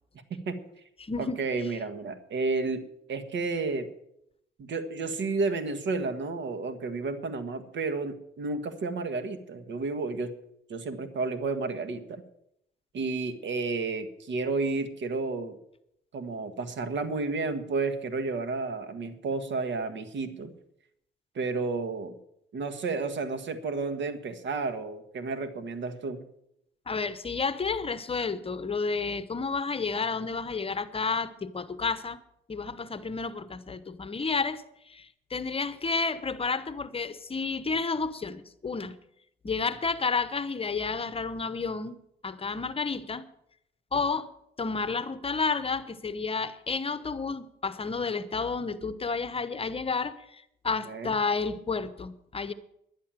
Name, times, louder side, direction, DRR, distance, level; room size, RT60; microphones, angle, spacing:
voice 1, 0.3-0.6 1.2-3.9 4.6-10.4 10.7-12.2 12.9-15.6 16.1-20.5 21.3-22.2 22.5-26.2 50.9-51.1, right 3 dB, 65° right, 1.6 m, -31 dB
voice 2, 1.0-1.4 26.9-32.2 32.5-39.0 39.4-42.0 42.2-43.3 43.9-44.3 44.6-52.5, left 4 dB, 30° left, 0.9 m, -31 dB
11.0 x 10.5 x 7.5 m
cardioid pair, 90°, 20 cm